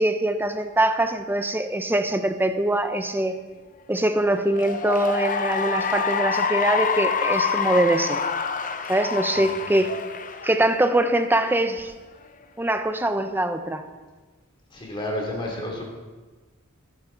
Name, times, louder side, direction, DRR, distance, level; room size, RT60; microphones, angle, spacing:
voice 1, 0.0-3.4 3.9-8.2 8.9-9.9 10.4-11.9 12.6-13.8, right 1 dB, 10° right, 8 dB, 0.8 m, -23 dB
Cheering / Applause, 4.4-11.1, left 6 dB, 40° left, 0.8 m, -27 dB
voice 2, 14.7-15.8, left 1 dB, 25° left, -1 dB, 3.0 m, -31 dB
19.5 x 10.5 x 4.0 m, 1.3 s
head